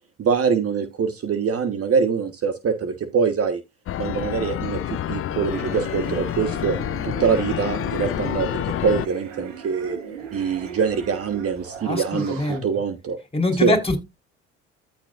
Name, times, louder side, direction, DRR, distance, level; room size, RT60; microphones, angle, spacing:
voice 1, 0.2-3.6 4.0-6.8 7.0-10.0 10.3-13.2 13.6-13.7, right 6 dB, 40° right, 10 dB, 1.3 m, -24 dB
sound 1, 3.9-9.1, left 12 dB, 35° left, 0.6 m, -28 dB
sound 2, 5.4-12.6, right 7 dB, 90° right, 2.1 m, -38 dB
voice 2, 11.9-12.6 13.3-14.0, left 2 dB, 15° left, 5 dB, 3.9 m, -23 dB
14.0 x 5.3 x 2.5 m, 0.23 s
hypercardioid pair, 65°, 36 cm